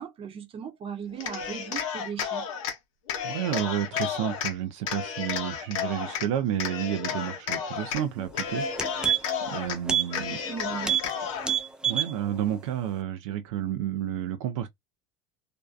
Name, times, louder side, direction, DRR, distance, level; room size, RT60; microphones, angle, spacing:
voice 1, 0.0-2.5 10.1-11.1, right 7 dB, 35° right, 0.8 m, -38 dB
Cheering, 1.1-2.8 3.1-4.5 4.8-6.3 6.6-8.0 8.3-9.8 10.1-11.5, left 7 dB, 85° left, 0.7 m, -32 dB
voice 2, 3.2-10.4 11.8-14.7, right 10 dB, 75° right, 0.5 m, -31 dB
sound 1, 8.2-8.3 8.6-9.5 9.8-10.1 10.4-10.5 10.8-11.1 11.4-12.1 12.5-12.6, right 8 dB, 5° right, 0.4 m, -26 dB
2.6 x 2.2 x 2.3 m
supercardioid pair, 100°, 16 cm